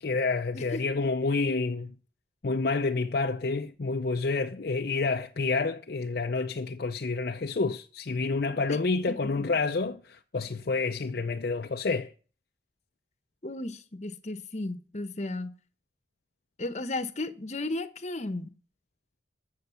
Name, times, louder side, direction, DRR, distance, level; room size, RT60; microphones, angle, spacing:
voice 1, 0.0-1.9 2.4-12.1, left 3 dB, 55° left, 0.5 m, -29 dB
voice 2, 0.5-1.0 8.7-8.8 13.4-15.5 16.6-18.5, left 2 dB, 40° left, 1.0 m, -34 dB
15.0 x 6.6 x 7.0 m
head